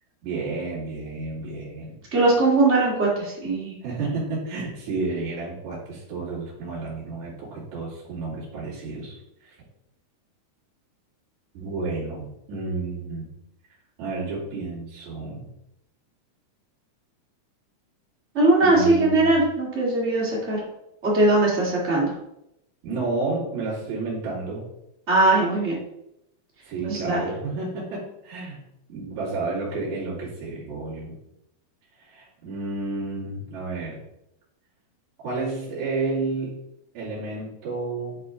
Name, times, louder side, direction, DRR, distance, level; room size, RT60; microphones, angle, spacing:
voice 1, 0.2-2.0 3.8-9.6 11.5-13.3 14.0-15.5 18.6-19.4 22.8-24.6 26.6-28.6 28.9-31.2 32.0-34.0 35.2-36.6 36.9-38.2, right 3 dB, 50° right, -8 dB, 3.4 m, -31 dB
voice 2, 2.1-3.7 18.3-20.6 21.0-22.1 25.1-25.8 26.8-27.2, right 2 dB, 65° right, -5 dB, 0.6 m, -20 dB
9.3 x 4.5 x 3.7 m, 0.83 s
omnidirectional pair, 4.7 m